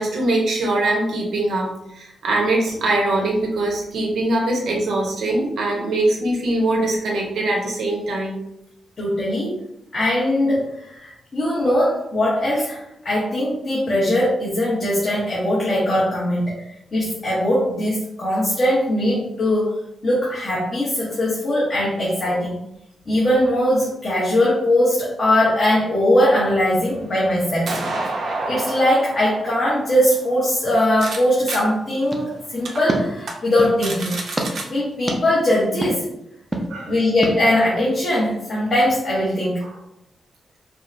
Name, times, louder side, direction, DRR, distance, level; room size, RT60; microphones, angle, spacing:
voice 1, 0.0-8.4 36.7-36.9 39.6-39.7, right 2 dB, 85° right, -1 dB, 0.9 m, -22 dB
voice 2, 9.0-9.6 9.9-12.8 13.0-16.7 16.9-22.6 23.1-27.7 28.4-34.2 34.7-36.1 36.8-39.6, left 1 dB, 35° left, -7 dB, 0.8 m, -20 dB
sound 1, 26.4-31.2 31.5-31.6 32.1-32.2 32.6-32.8 33.2-33.3 33.6-34.6, right 2 dB, 65° right, 0.6 m, -30 dB
sound 2, 32.1-33.8 34.4-34.5 35.1-35.2 35.8-35.9 36.5-36.7 37.2-37.4, right 1 dB, 15° right, 0.4 m, -27 dB
4.6 x 2.0 x 2.5 m, 0.81 s
wide cardioid pair, 160°, 0 cm